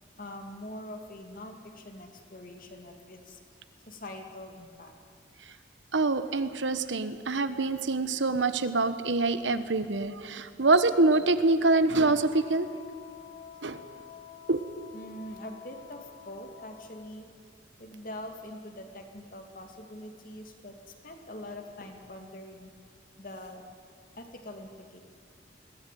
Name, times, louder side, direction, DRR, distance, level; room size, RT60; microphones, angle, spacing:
voice 1, 0.2-3.4 3.9-4.9 14.9-17.3 17.8-22.7 23.2-23.6 24.2-25.0, left 1 dB, 50° left, 4 dB, 2.4 m, -44 dB
voice 2, 5.9-12.7 13.6-13.8 14.5-14.6, right 3 dB, 80° right, 11 dB, 1.2 m, -25 dB
Wind instrument woodwind instrument, 11.9-17.2, left 8 dB, 25° left, 1.1 m, -49 dB
21.5 x 17.0 x 9.3 m, 2.2 s
head